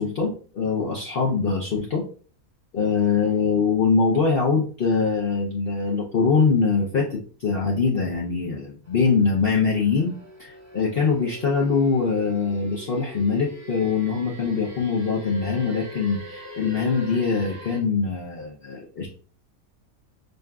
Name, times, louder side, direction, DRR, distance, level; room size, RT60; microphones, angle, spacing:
voice 1, 0.0-2.0 2.7-10.1 10.4-19.1, left 5 dB, 50° left, -3 dB, 0.7 m, -23 dB
sound 1, 8.8-17.8, left 1 dB, 15° right, 0.8 m, -41 dB
6.4 x 2.4 x 2.3 m, 0.42 s
omnidirectional pair, 1.6 m